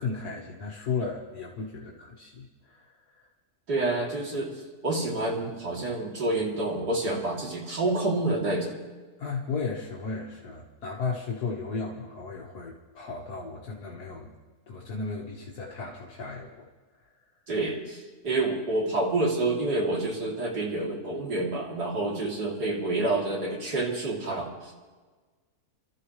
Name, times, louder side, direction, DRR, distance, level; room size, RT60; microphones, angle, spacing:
voice 1, 0.0-2.9 3.2-3.3 9.2-14.3 14.7-16.7, left 4 dB, 70° left, -3 dB, 2.1 m, -35 dB
voice 2, 3.7-4.5 4.8-8.8 17.5-24.7, right 2 dB, 85° right, -3 dB, 3.7 m, -28 dB
30.0 x 13.5 x 3.3 m, 1.4 s
omnidirectional pair, 1.7 m